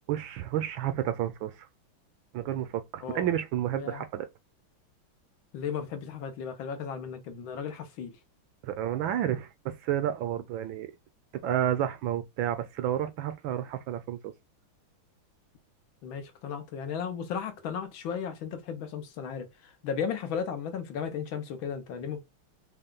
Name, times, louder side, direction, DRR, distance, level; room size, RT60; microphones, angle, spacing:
voice 1, 0.1-1.6 2.3-4.3 8.6-10.9 11.3-14.3, right 11 dB, 75° right, 1.3 m, -30 dB
voice 2, 5.5-8.1 16.0-22.2, left 7 dB, 70° left, 1.6 m, -35 dB
5.5 x 2.3 x 3.7 m
omnidirectional pair, 2.3 m